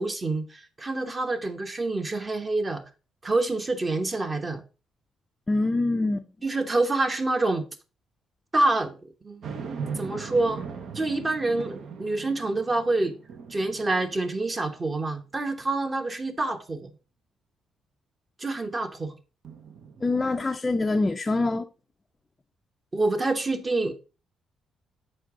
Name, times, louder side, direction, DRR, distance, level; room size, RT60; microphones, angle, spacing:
voice 1, 0.0-2.8 3.2-4.6 6.4-7.7 8.5-9.5 10.0-10.6 10.9-13.2 13.5-16.9 18.4-19.2 22.9-23.9, right 2 dB, 25° right, 1.0 m, -27 dB
voice 2, 5.5-6.2 20.0-21.7, left 2 dB, 25° left, 0.5 m, -25 dB
sound 1, 9.4-15.0 15.5-15.6 19.4-20.5, right 6 dB, 65° right, 0.9 m, -39 dB
6.6 x 4.8 x 3.6 m
cardioid pair, 90°, 0 cm